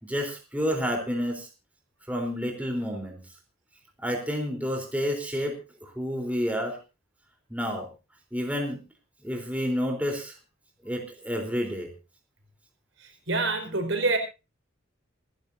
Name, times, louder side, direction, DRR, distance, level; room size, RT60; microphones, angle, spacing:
voice 1, 0.0-1.5 2.1-3.2 4.0-6.8 7.5-7.9 8.3-8.8 9.2-10.3 10.8-11.9, equal, 5° right, 1 dB, 3.8 m, -29 dB
voice 2, 13.0-14.2, right 3 dB, 65° right, 5 dB, 4.7 m, -26 dB
28.0 x 11.5 x 2.7 m, 0.30 s
head